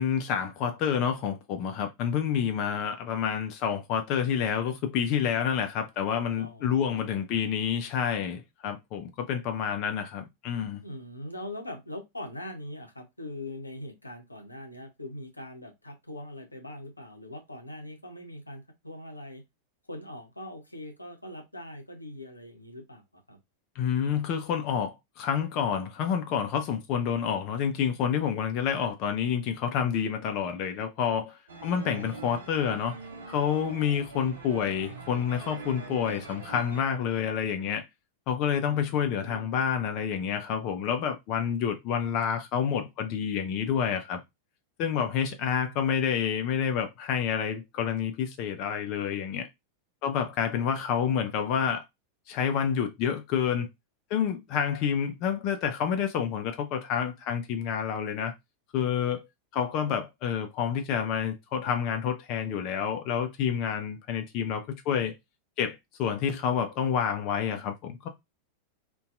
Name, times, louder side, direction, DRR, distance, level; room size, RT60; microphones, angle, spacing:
voice 1, 0.0-10.8 23.8-33.0 33.3-37.9 38.3-44.2 44.8-49.5 50.0-51.8 52.3-53.7 54.1-58.3 58.7-59.3 59.5-65.1 65.6-68.1, left 8 dB, 40° left, 0.4 m, -28 dB
voice 2, 6.3-7.2 10.8-19.4 19.9-23.4 38.6-39.6 50.5-51.6, left 1 dB, 85° left, 0.6 m, -42 dB
sound 1, 31.5-36.8, right 4 dB, 70° right, 0.5 m, -43 dB
2.6 x 2.2 x 2.4 m
figure-of-eight pair, 90°, 0 cm